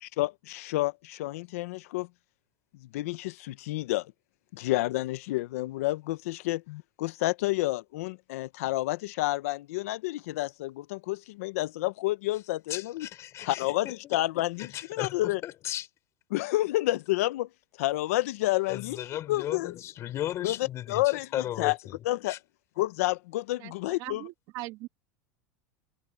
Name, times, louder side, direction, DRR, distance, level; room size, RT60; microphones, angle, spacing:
voice 1, 0.0-2.1 2.8-4.1 4.5-13.1 13.4-15.4 16.3-17.5 17.8-19.7 20.4-20.6 20.9-21.8 22.0-22.4 22.8-24.2, left 18 dB, 80° left, 0.8 m, -30 dB
voice 2, 12.7-13.6 14.0-14.2 14.6-15.9 18.7-22.0 22.2-22.4, left 12 dB, 40° left, 4.4 m, -36 dB
voice 3, 24.0-24.9, right 20 dB, 55° right, 2.1 m, -39 dB
supercardioid pair, 145°, 8 cm